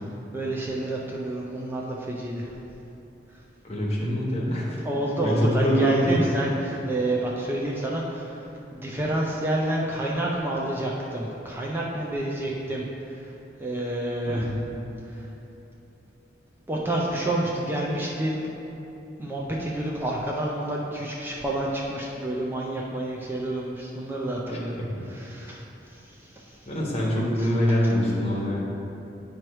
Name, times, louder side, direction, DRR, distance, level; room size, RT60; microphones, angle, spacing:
voice 1, 0.3-2.5 4.8-8.4 8.7-12.8 13.1-13.3 13.6-14.5 15.1-15.3 16.7-18.4 19.2-24.8 25.1-25.6 25.9-26.6 27.4-27.5, right 1 dB, 10° right, -4 dB, 0.5 m, -29 dB
voice 2, 3.6-4.8 5.2-6.1 14.3-14.5 24.4-24.6 26.7-28.6, equal, 35° left, -5 dB, 1.2 m, -24 dB
9.1 x 3.0 x 4.7 m, 2.9 s
head